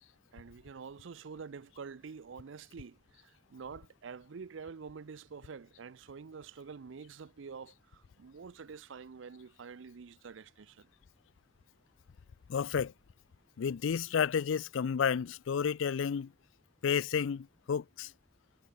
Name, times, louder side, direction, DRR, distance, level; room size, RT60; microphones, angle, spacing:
voice 1, 0.3-10.9, right 5 dB, 80° right, 0.5 m, -47 dB
voice 2, 12.5-12.9 13.6-16.3 16.8-18.1, left 7 dB, 90° left, 0.4 m, -31 dB
head